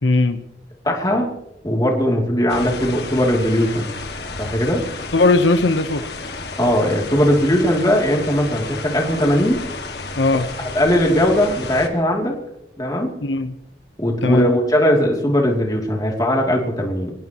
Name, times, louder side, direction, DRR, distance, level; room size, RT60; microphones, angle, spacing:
voice 1, 0.0-0.4 5.1-6.0 10.2-10.5 13.2-13.6 14.2-14.5, left 2 dB, 85° left, 9 dB, 1.1 m, -17 dB
voice 2, 0.8-1.3 1.6-3.9 4.4-4.8 6.6-9.6 10.7-12.3 12.8-13.1 14.0-17.1, equal, 20° left, 0 dB, 3.0 m, -19 dB
sound 1, 2.5-11.9, left 3 dB, 60° left, 2.0 m, -32 dB
25.0 x 18.0 x 3.1 m, 0.88 s
head